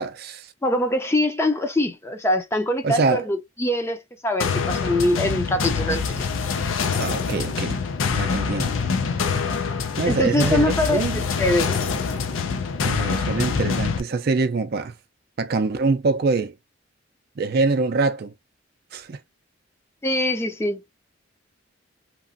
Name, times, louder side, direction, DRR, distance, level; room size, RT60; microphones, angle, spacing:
voice 1, 0.0-0.5 2.8-3.3 7.0-7.8 8.1-8.7 10.0-11.2 12.8-14.9 15.4-16.5 17.4-18.3 18.9-19.2, right 3 dB, 50° right, 0.4 m, -24 dB
voice 2, 0.6-6.3 10.0-11.8 20.0-20.8, left 1 dB, 15° left, 0.5 m, -23 dB
sound 1, 4.4-14.0, left 5 dB, 85° left, 0.5 m, -25 dB
2.9 x 2.4 x 2.5 m
head